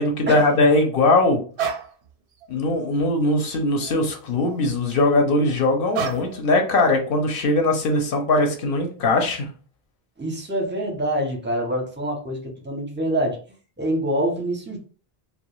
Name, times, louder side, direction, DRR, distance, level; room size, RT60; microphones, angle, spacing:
voice 1, 0.0-1.4 2.5-9.5, left 2 dB, 65° left, 3 dB, 0.8 m, -20 dB
sound 1, 1.6-1.9 2.4-2.6 3.0-4.0 4.4-4.8 5.9-6.4, right 7 dB, 85° right, 0.8 m, -30 dB
voice 2, 10.2-13.4 13.8-14.8, right 1 dB, 15° right, 1 dB, 0.4 m, -25 dB
2.2 x 2.1 x 2.9 m, 0.39 s
omnidirectional pair, 1.1 m